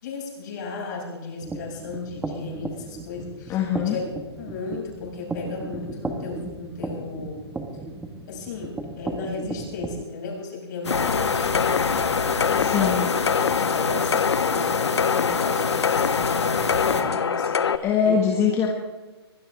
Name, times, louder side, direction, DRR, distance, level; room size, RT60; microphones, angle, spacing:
voice 1, 0.0-4.0 4.4-7.5 8.3-12.0 12.4-13.1 13.6-18.4, left 4 dB, 45° left, -1 dB, 6.5 m, -35 dB
sound 1, 1.4-10.0, right 2 dB, 5° right, 1.2 m, -35 dB
voice 2, 3.5-4.0 12.6-13.1 17.8-18.7, left 7 dB, 20° left, 0 dB, 1.8 m, -22 dB
sound 2, 10.8-17.0, left 4 dB, 85° left, 2.0 m, -29 dB
sound 3, 10.9-17.8, left 6 dB, 70° left, 1.0 m, -24 dB
24.0 x 16.0 x 3.5 m, 1.3 s
hypercardioid pair, 145°, 14 cm